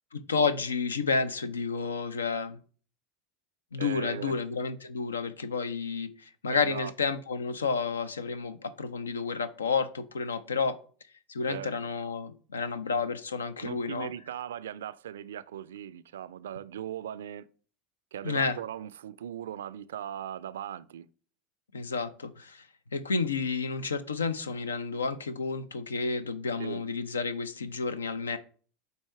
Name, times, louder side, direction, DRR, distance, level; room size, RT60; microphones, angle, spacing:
voice 1, 0.1-2.6 3.7-10.8 11.3-14.1 18.2-18.6 21.7-22.7 22.9-28.4, left 5 dB, 80° left, 0.5 m, -31 dB
voice 2, 3.8-4.3 6.5-6.9 11.5-11.7 13.6-17.5 18.1-21.1 26.6-26.8, right 10 dB, 70° right, 0.3 m, -39 dB
8.2 x 2.8 x 4.4 m
figure-of-eight pair, 80°, 0 cm